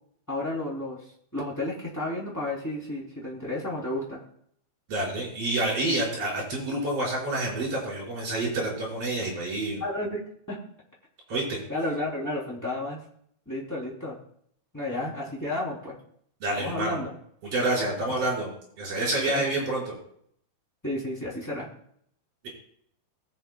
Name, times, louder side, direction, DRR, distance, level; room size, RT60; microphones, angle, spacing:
voice 1, 0.3-1.0 1.3-4.2 9.8-10.2 10.5-10.6 11.7-13.0 13.5-14.1 14.7-16.0 16.5-17.1 19.2-19.5 20.8-21.7, left 1 dB, 5° left, -4 dB, 2.6 m, -32 dB
voice 2, 4.9-9.8 11.3-11.6 16.4-17.0 17.4-18.5 18.8-19.9, right 2 dB, 40° right, -4 dB, 6.3 m, -28 dB
22.0 x 7.6 x 2.3 m, 0.66 s
omnidirectional pair, 4.5 m